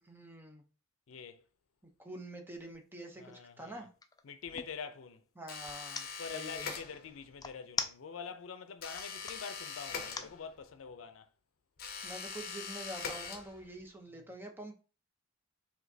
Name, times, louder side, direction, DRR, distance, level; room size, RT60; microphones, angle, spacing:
voice 1, 0.0-0.6 2.0-3.9 5.4-6.7 12.0-14.7, right 1 dB, 10° right, 0.7 m, -46 dB
voice 2, 1.1-1.4 3.2-3.9 4.2-5.2 6.2-11.3, left 6 dB, 85° left, 0.5 m, -45 dB
sound 1, 2.5-2.7 3.2-4.8 5.7-6.1 7.4-8.4 8.8-9.4 10.0-10.4, left 5 dB, 20° left, 0.3 m, -40 dB
sound 2, 5.5-7.3 8.8-10.7 11.8-13.8, left 5 dB, 50° left, 0.7 m, -42 dB
5.0 x 3.4 x 2.7 m
head